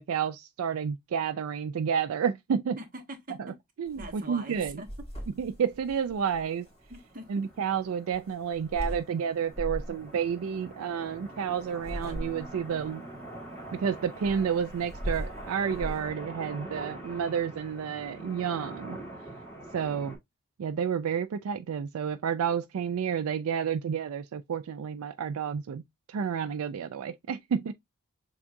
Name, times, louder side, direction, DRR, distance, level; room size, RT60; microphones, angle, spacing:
voice 1, 0.0-2.8 3.4-3.5 3.8-4.8 5.4-6.7 7.3-13.1 13.7-19.0 19.7-20.2 20.6-25.8 26.1-27.7, right 7 dB, 75° right, 0.3 m, -30 dB
voice 2, 2.7-3.5 3.9-4.9 6.9-7.3, right 1 dB, 40° right, 1.0 m, -42 dB
sound 1, 3.9-4.2 4.5-7.0 8.1-9.0 9.5-10.0 11.6-12.7 14.2-16.1, equal, 25° left, 2.1 m, -38 dB
sound 2, 5.0-5.1 5.4-5.5 5.7-20.2, right 1 dB, 5° left, 2.1 m, -45 dB
7.0 x 2.4 x 2.5 m
head